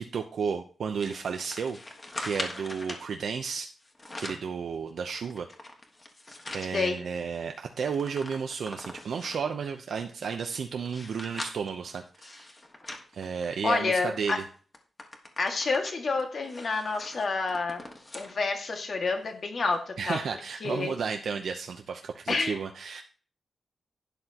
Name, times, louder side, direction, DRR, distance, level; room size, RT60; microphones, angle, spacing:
voice 1, 0.0-1.8 2.2-3.7 4.2-5.5 6.5-12.4 13.1-14.4 20.0-23.0, right 6 dB, 70° right, 4 dB, 0.8 m, -33 dB
sound 1, 1.0-3.1 3.8-4.5 5.0-6.7 7.2-7.3 7.5-9.5 10.1-13.8 14.3-14.4 14.7-18.3 18.8-18.9 19.7-19.8, left 1 dB, 20° left, 1.4 m, -42 dB
voice 2, 13.6-14.4 15.4-17.8 18.1-20.2 20.6-20.9 22.3-22.6, left 4 dB, 45° left, 3 dB, 2.0 m, -28 dB
11.5 x 10.5 x 3.0 m, 0.41 s
wide cardioid pair, 175°, 0 cm